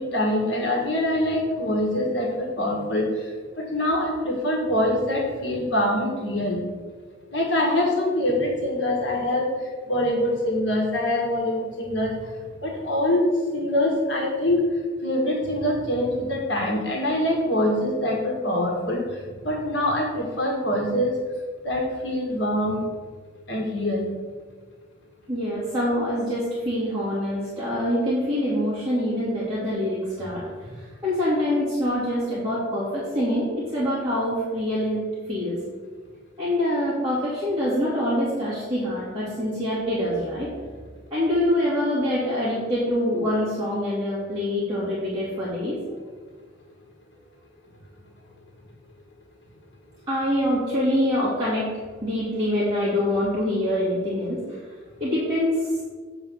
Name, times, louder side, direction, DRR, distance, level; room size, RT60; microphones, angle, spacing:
voice 1, 0.0-3.0 3.6-6.6 7.3-9.5 9.9-12.2 12.6-13.3 13.5-14.6 15.0-19.0 19.4-21.1 21.6-22.8 23.5-24.1, left 1 dB, 70° left, -2 dB, 1.6 m, -24 dB
voice 2, 25.3-30.4 30.7-35.6 36.4-40.5 41.1-45.8 50.1-51.7 52.0-54.6 55.0-55.8, left 1 dB, 20° right, -10 dB, 2.3 m, -25 dB
8.0 x 4.1 x 6.9 m, 1.5 s
head